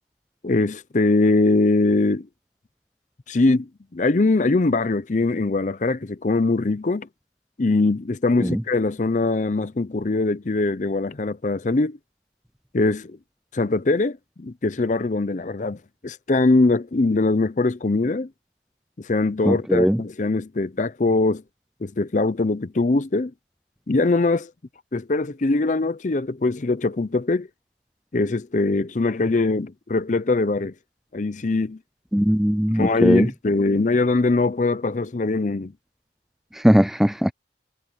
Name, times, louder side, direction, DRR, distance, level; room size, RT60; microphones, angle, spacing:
voice 1, 0.4-2.3 3.3-7.1 7.6-12.0 12.7-13.2 13.5-18.3 19.0-21.4 21.8-23.3 23.9-24.5 24.9-27.5 28.1-30.7 31.1-31.8 32.7-35.7, left 3 dB, 45° left, 0.6 m, -22 dB
voice 2, 19.5-20.0 32.1-33.3 36.5-37.3, equal, ahead, 0.3 m, -19 dB
head